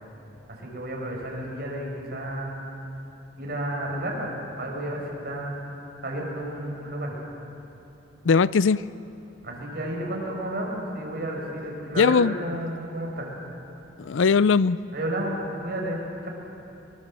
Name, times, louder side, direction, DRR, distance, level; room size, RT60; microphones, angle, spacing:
voice 1, 0.6-2.6 3.4-5.6 6.0-7.1 9.4-13.3 14.9-16.3, right 1 dB, 55° right, -2 dB, 5.9 m, -32 dB
voice 2, 8.3-8.8 12.0-12.3 14.0-14.8, left 5 dB, 85° left, 18 dB, 0.5 m, -19 dB
23.5 x 21.5 x 7.6 m, 2.8 s
head